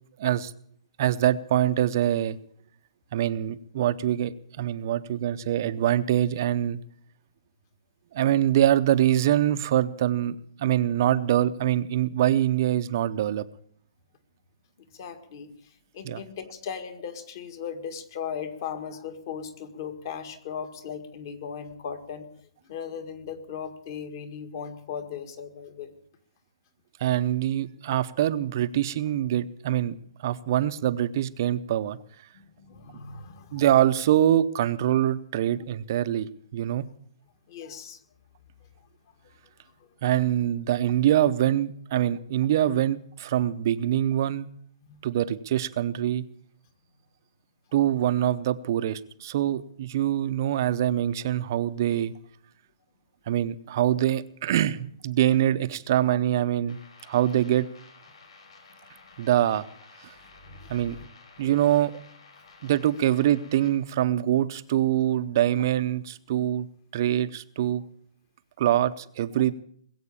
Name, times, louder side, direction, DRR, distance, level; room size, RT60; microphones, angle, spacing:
voice 1, 0.2-0.5 1.0-2.4 3.1-6.8 8.1-13.4 16.0-16.2 27.0-30.0 30.2-32.0 33.5-36.9 40.0-44.5 45.0-46.2 47.7-52.1 53.3-56.8 57.1-57.7 59.2-59.7 60.7-61.0 61.4-61.9 62.6-66.7 66.9-67.8 68.6-69.6, right 12 dB, 35° right, 12 dB, 0.7 m, -24 dB
voice 2, 14.9-22.3 22.6-26.0 32.3-33.6 37.5-38.0 42.1-42.2 44.8-45.0 56.1-56.2 60.4-61.0 61.4-61.7, left 7 dB, 35° left, 8 dB, 1.8 m, -38 dB
sound 1, 56.7-63.7, left 4 dB, 70° left, 5.3 m, -53 dB
21.0 x 7.9 x 8.6 m, 0.63 s
hypercardioid pair, 170°, 3 cm